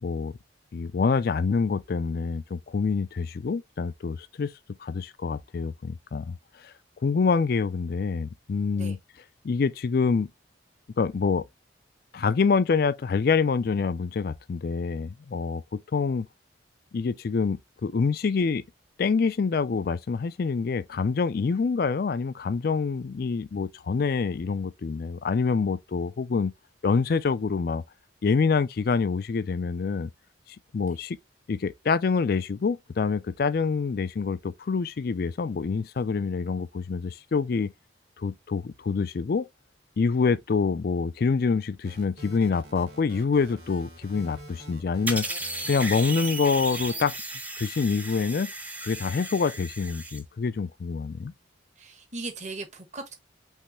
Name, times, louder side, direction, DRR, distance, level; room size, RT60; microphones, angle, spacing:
voice 1, 0.0-0.3 0.7-4.5 4.8-6.4 7.0-9.0 9.4-10.3 11.0-11.4 12.1-16.3 16.9-18.6 19.0-26.5 26.8-27.8 28.2-30.1 30.7-31.2 31.5-37.7 38.2-39.5 40.0-45.3 45.7-47.1 47.6-48.5 48.8-51.3, left 5 dB, 50° left, 0.4 m, -26 dB
sound 1, 41.8-47.1, right 1 dB, 55° right, 1.8 m, -46 dB
sound 2, 45.1-50.2, right 2 dB, 10° right, 0.6 m, -35 dB
voice 2, 51.8-53.1, right 3 dB, 40° right, 1.2 m, -38 dB
5.4 x 3.1 x 3.0 m
head